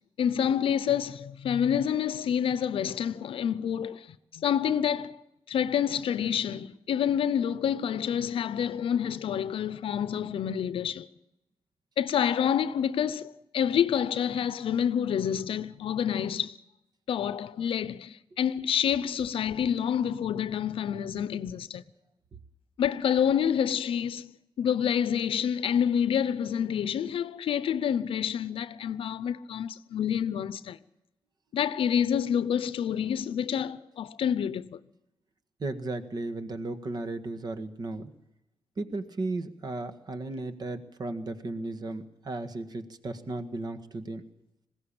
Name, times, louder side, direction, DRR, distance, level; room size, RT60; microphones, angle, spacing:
voice 1, 0.2-5.2 5.5-11.1 12.0-16.6 17.1-21.8 22.8-24.3 24.6-30.8 31.5-34.8, left 8 dB, 80° left, 0.7 m, -28 dB
voice 2, 35.6-38.1 38.8-44.2, right 2 dB, 45° right, 1.7 m, -35 dB
20.5 x 16.5 x 8.8 m
cardioid pair, 100°, 9 cm